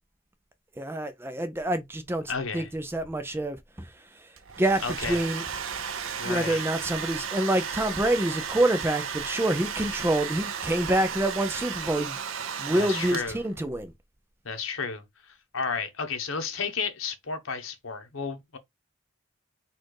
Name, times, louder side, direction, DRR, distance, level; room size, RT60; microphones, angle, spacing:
voice 1, 0.8-2.2 2.5-3.6 4.6-5.4 6.2-12.2 12.6-13.9, right 1 dB, 10° right, 0.4 m, -27 dB
voice 2, 2.3-2.7 4.8-5.2 6.2-6.6 12.7-13.4 14.4-18.6, left 5 dB, 85° left, 1.0 m, -32 dB
Domestic sounds home sounds, 4.4-13.6, right 7 dB, 80° right, 0.6 m, -34 dB
4.3 x 2.4 x 4.6 m
head